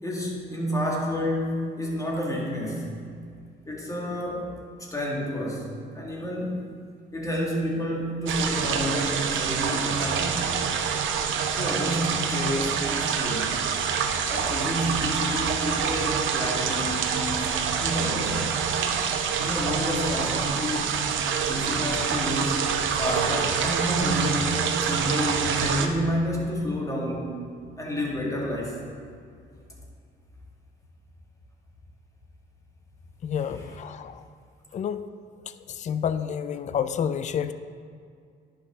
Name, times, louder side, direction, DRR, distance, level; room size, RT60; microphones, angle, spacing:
voice 1, 0.0-2.9 3.7-4.5 4.8-6.6 7.1-10.6 11.6-13.5 14.3-18.4 19.4-21.0 21.5-22.6 23.0-27.4 27.8-28.8, equal, 15° left, -3 dB, 1.9 m, -29 dB
sound 1, 8.3-25.9, right 7 dB, 75° right, 0.6 m, -26 dB
voice 2, 33.2-34.2 34.7-35.1 35.7-37.5, left 8 dB, 40° left, 12 dB, 0.4 m, -29 dB
11.0 x 5.6 x 3.6 m, 2.3 s
cardioid pair, 90°, 20 cm